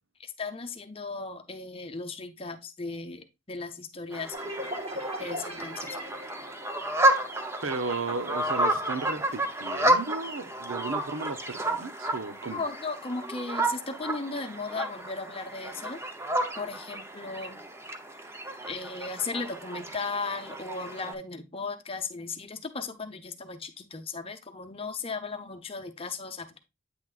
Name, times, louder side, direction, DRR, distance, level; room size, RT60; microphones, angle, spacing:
voice 1, 0.2-4.7 5.2-6.0 12.5-16.0 16.6-17.6 18.7-26.6, left 4 dB, 30° left, 0.8 m, -36 dB
sound 1, 4.1-21.1, right 1 dB, 15° right, 0.7 m, -31 dB
sound 2, 4.3-7.8, equal, 30° right, 1.7 m, -39 dB
voice 2, 7.6-12.6, right 3 dB, 85° right, 0.8 m, -34 dB
8.8 x 6.1 x 2.4 m
head